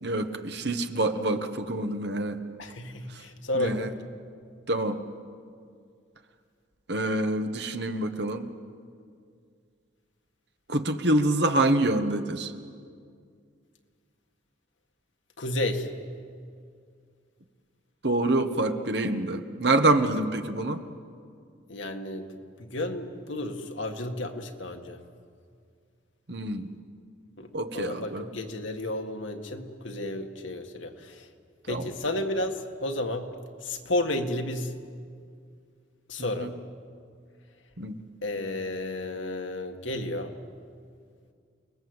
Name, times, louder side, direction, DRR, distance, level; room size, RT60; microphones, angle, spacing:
voice 1, 0.0-2.4 3.5-3.9 4.7-5.0 6.9-8.5 10.7-12.5 18.0-20.8 26.3-26.7 27.5-28.3 31.7-31.9 36.2-36.5 37.8-38.0, right 2 dB, 60° right, 7 dB, 1.4 m, -26 dB
voice 2, 2.6-3.9 15.4-15.9 21.7-22.3 22.6-25.0 27.4-31.3 31.7-33.3 33.6-34.7 36.1-36.5 38.2-40.3, left 1 dB, 90° left, 4 dB, 1.9 m, -32 dB
29.0 x 20.5 x 8.0 m, 2.2 s
head